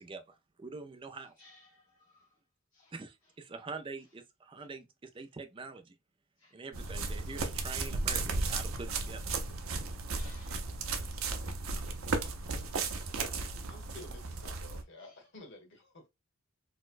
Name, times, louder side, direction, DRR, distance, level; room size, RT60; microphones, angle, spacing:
voice 1, 0.0-1.3 2.9-4.9 5.1-5.9 6.5-9.2, right 4 dB, 25° right, 0.4 m, -45 dB
voice 2, 1.4-2.3 2.7-2.9 6.4-6.5 7.0-7.1 10.1-10.6 15.0-15.1, left 2 dB, 35° left, 0.7 m, -59 dB
sound 1, 6.7-14.8, right 3 dB, 80° right, 0.6 m, -35 dB
voice 3, 13.3-16.1, left 2 dB, 60° left, 1.2 m, -52 dB
4.1 x 2.1 x 2.4 m
head